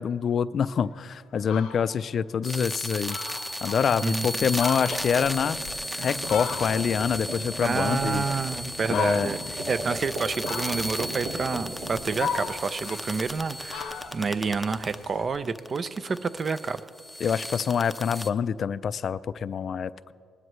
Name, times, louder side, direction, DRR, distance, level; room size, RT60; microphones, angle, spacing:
voice 1, 0.0-3.2 3.6-5.6 6.0-8.2 8.9-9.3 17.2-19.9, left 7 dB, 55° left, 16 dB, 0.3 m, -26 dB
Fowl, 0.9-1.0 1.3-1.9 2.4-2.5 2.8-2.9 3.1-4.0 4.4-7.1 7.4-8.4 8.9-9.6 10.4-11.1 11.7-13.4 13.7-15.3, left 7 dB, 85° left, 0.8 m, -36 dB
sound 1, 2.4-15.0 15.3-18.3, equal, ahead, 0.7 m, -35 dB
sound 2, 4.8-15.2, right 1 dB, 90° right, 2.2 m, -39 dB
voice 2, 7.6-16.8, right 5 dB, 40° right, 13 dB, 0.5 m, -29 dB
19.5 x 12.5 x 3.1 m, 2.2 s
cardioid pair, 90°, 0 cm